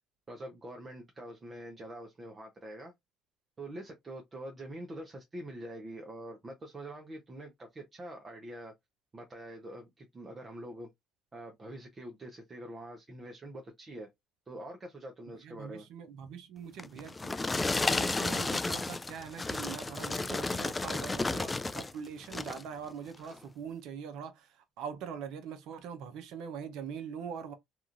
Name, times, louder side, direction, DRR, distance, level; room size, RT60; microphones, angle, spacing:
voice 1, 0.3-2.9 3.6-8.7 9.1-10.9 11.3-14.1 14.5-15.9, right 1 dB, 30° right, 0.6 m, -45 dB
voice 2, 15.3-27.5, right 7 dB, 75° right, 0.6 m, -43 dB
sound 1, 16.8-21.9 22.2-22.7 23.2-23.4, left 3 dB, 20° left, 0.3 m, -32 dB
2.9 x 2.4 x 2.5 m
supercardioid pair, 70°, 0 cm